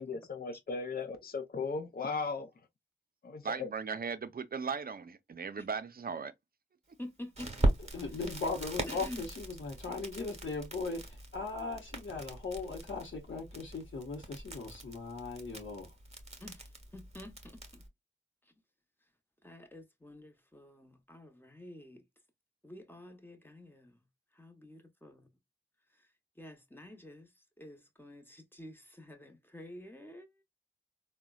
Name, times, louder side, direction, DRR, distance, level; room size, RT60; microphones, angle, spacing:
voice 1, 0.0-2.5 3.2-3.7, left 4 dB, 50° left, 0.5 m, -37 dB
voice 2, 3.4-6.3, right 5 dB, 50° right, 0.5 m, -37 dB
voice 3, 7.0-7.5 8.9-9.3 16.4-17.3 19.4-22.0 22.6-23.9 24.4-25.3 26.4-27.3 27.6-30.3, left 1 dB, 10° left, 0.9 m, -49 dB
Crackle, 7.4-17.9, right 2 dB, 35° right, 1.0 m, -39 dB
voice 4, 7.8-16.0, left 3 dB, 80° left, 0.8 m, -38 dB
3.8 x 2.1 x 2.2 m
cardioid pair, 50°, 20 cm